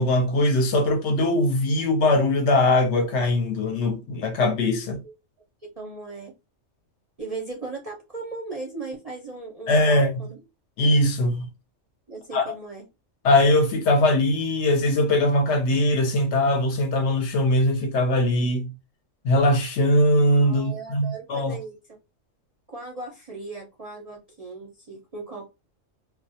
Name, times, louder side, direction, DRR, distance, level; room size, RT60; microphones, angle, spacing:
voice 1, 0.0-5.0 9.7-10.2 10.8-11.5 12.3-12.5 13.2-18.7 19.2-21.6, left 1 dB, 65° left, 0.8 m, -21 dB
voice 2, 5.8-6.3 7.2-10.4 12.1-12.8 20.4-21.8 22.7-25.5, right 3 dB, 45° right, 0.5 m, -37 dB
2.3 x 2.0 x 2.6 m
omnidirectional pair, 1.3 m